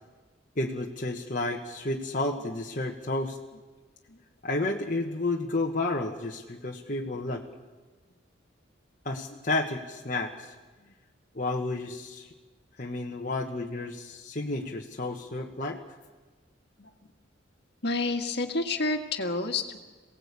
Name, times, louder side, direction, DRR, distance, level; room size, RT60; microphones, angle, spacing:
voice 1, 0.6-3.4 4.4-7.4 9.0-10.5 11.3-12.3 12.8-15.8, left 2 dB, 45° left, -1 dB, 1.5 m, -31 dB
voice 2, 17.8-19.8, left 3 dB, 60° left, 5 dB, 1.9 m, -29 dB
27.0 x 18.0 x 8.4 m, 1.3 s
head